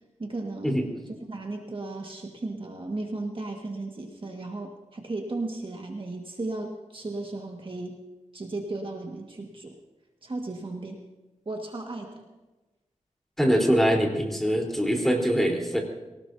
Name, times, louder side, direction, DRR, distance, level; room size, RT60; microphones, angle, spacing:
voice 1, 0.2-0.8 1.3-8.0 8.3-9.8 10.2-11.0 11.4-12.2, right 2 dB, 45° right, 1 dB, 1.7 m, -35 dB
voice 2, 13.4-15.8, equal, ahead, 0 dB, 3.9 m, -23 dB
23.0 x 18.5 x 2.7 m, 1.1 s
wide cardioid pair, 75°, 13 cm